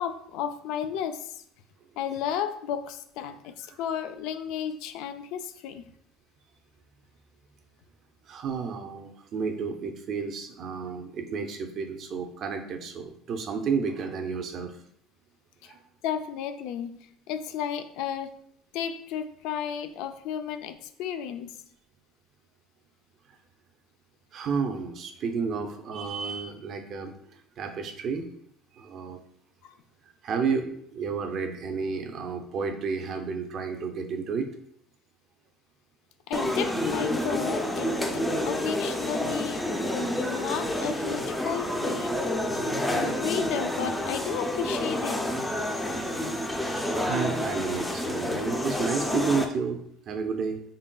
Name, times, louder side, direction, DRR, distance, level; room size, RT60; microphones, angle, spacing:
voice 1, 0.0-1.4 2.0-5.9 15.6-15.7 16.0-17.0 17.3-18.3 18.7-21.5 29.6-29.7 36.3-42.1 42.9-45.3, left 8 dB, 75° left, 9 dB, 0.3 m, -33 dB
voice 2, 8.2-14.8 15.6-15.8 24.3-28.3 28.7-29.2 30.2-34.5 46.6-50.6, right 5 dB, 45° right, 6 dB, 0.5 m, -31 dB
sound 1, 36.3-49.5, left 1 dB, 10° left, 0.4 m, -29 dB
3.9 x 3.6 x 2.3 m, 0.68 s
cardioid pair, 125°, 0 cm